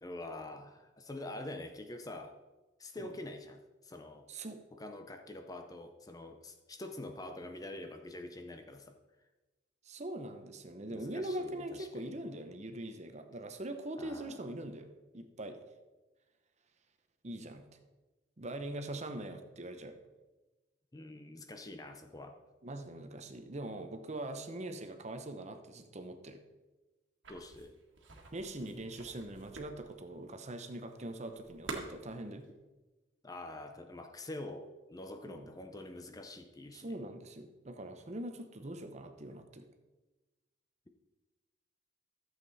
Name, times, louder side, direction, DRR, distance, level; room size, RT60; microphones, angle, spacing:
voice 1, 0.0-2.4 2.8-4.3 4.7-8.9 10.9-12.1 14.0-14.5 20.9-22.4 27.3-27.8 33.2-36.9, left 2 dB, 20° left, 6 dB, 0.6 m, -46 dB
voice 2, 4.3-4.6 9.8-15.6 17.2-17.7 18.4-20.0 22.6-26.4 28.3-32.5 35.3-35.5 36.7-39.7, right 1 dB, 35° right, 7 dB, 0.8 m, -42 dB
sound 1, 27.2-32.5, right 3 dB, 80° right, 1.7 m, -48 dB
12.5 x 7.5 x 4.1 m, 1.2 s
head